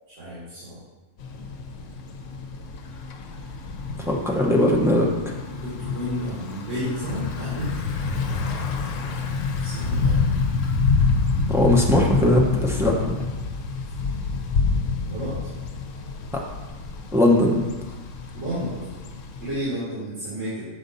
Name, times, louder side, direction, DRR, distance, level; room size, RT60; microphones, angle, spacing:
voice 1, 0.2-0.8 5.5-7.7 9.6-10.2 15.1-15.4 18.3-18.9 19.4-20.7, equal, 85° right, -9 dB, 2.2 m, -31 dB
Thunder / Bicycle, 1.2-19.6, left 4 dB, 75° left, 1.0 m, -27 dB
voice 2, 4.1-5.1 11.5-13.2 17.1-17.6, left 1 dB, 5° right, -2 dB, 0.7 m, -19 dB
7.0 x 5.2 x 4.1 m, 1.2 s
omnidirectional pair, 1.3 m